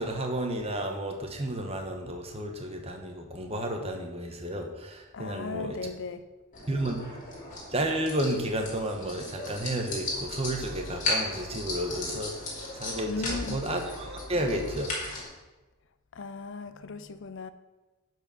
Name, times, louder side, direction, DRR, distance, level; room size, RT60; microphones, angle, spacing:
voice 1, 0.0-5.8 6.7-7.0 7.7-13.8 14.3-14.9, right 1 dB, 25° right, 1.1 m, -32 dB
voice 2, 5.1-6.3 13.1-13.6 16.1-17.5, left 4 dB, 55° left, 0.5 m, -37 dB
sound 1, 6.5-15.2, left 2 dB, 35° left, 2.9 m, -36 dB
11.0 x 4.7 x 6.1 m
head